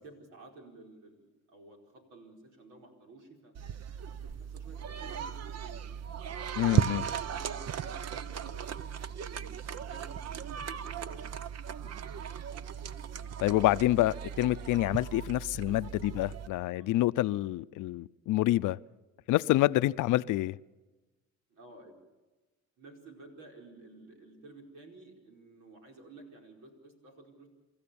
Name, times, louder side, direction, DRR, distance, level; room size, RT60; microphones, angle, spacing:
voice 1, 0.0-3.6 3.9-5.4 5.6-5.8 6.6-8.9 9.3-11.3 11.8-12.5 15.6-16.2 16.7-16.9 21.5-21.9 22.8-27.6, right 2 dB, 90° right, 1 dB, 4.9 m, -54 dB
sound 1, 3.6-16.5, right 9 dB, 60° right, 0.9 m, -36 dB
voice 2, 6.6-7.0 13.4-18.8 19.3-20.6, left 16 dB, 85° left, 17 dB, 0.6 m, -27 dB
28.0 x 14.0 x 7.1 m, 1.2 s
cardioid pair, 90°, 30 cm